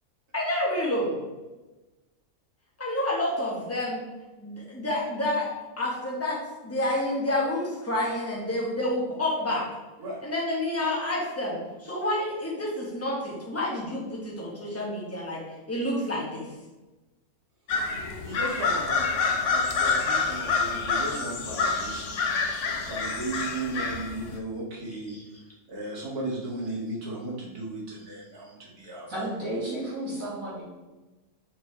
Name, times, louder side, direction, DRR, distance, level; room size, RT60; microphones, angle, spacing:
voice 1, 0.3-1.1 2.8-4.0 4.4-5.5 5.8-6.4 6.6-9.7 10.2-15.4 15.7-16.4 25.1-25.2, left 1 dB, 10° left, -4 dB, 1.6 m, -29 dB
sound 1, 17.7-24.4, left 4 dB, 60° left, 1.1 m, -27 dB
voice 2, 18.2-22.1 22.8-25.2 25.7-29.2, right 2 dB, 90° right, -4 dB, 2.4 m, -35 dB
voice 3, 29.1-30.6, right 1 dB, 65° right, -8 dB, 2.9 m, -32 dB
5.8 x 4.9 x 4.7 m, 1.1 s
omnidirectional pair, 1.6 m